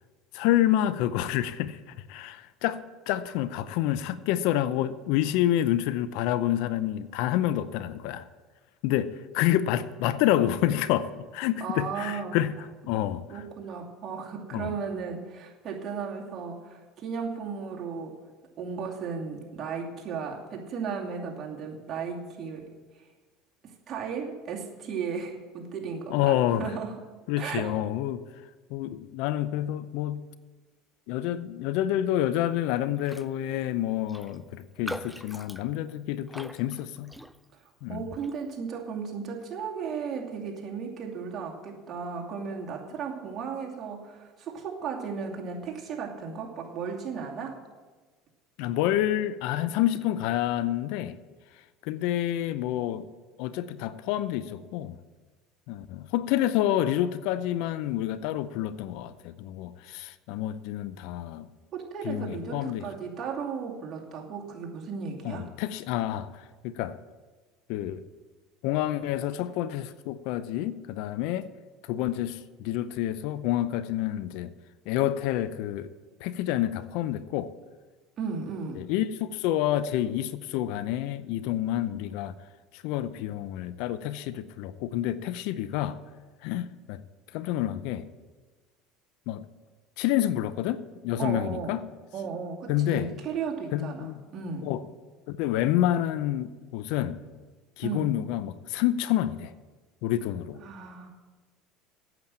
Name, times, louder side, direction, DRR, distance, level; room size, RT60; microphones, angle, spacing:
voice 1, 0.3-1.8 2.1-8.3 8.8-12.5 12.9-13.4 14.5-14.7 26.1-26.6 27.3-28.2 28.7-30.2 31.1-37.1 37.8-38.0 48.6-51.2 51.8-53.1 53.4-55.0 55.7-61.5 62.0-62.9 65.2-66.9 67.7-68.0 68.6-71.5 71.9-74.5 74.9-75.9 76.2-77.5 78.8-82.3 82.7-86.0 86.4-87.0 87.3-88.1 89.3-89.4 90.0-91.9 92.7-93.1 93.7-94.2 94.6-94.8 95.3-97.2 97.8-99.5 100.0-100.6, left 12 dB, 70° left, 15 dB, 0.6 m, -28 dB
voice 2, 11.6-12.4 13.0-18.2 18.6-22.7 23.6-27.0 27.4-27.7 37.9-47.6 61.7-65.5 78.2-78.9 91.2-91.8 92.1-94.7 97.8-98.1 100.6-101.1, right 6 dB, 45° right, -1 dB, 2.6 m, -35 dB
Raindrop, 33.0-33.3 33.6-33.7 34.1-37.7 38.1-38.4, equal, ahead, 0.5 m, -42 dB
9.0 x 7.7 x 8.6 m, 1.3 s
supercardioid pair, 90°, 0 cm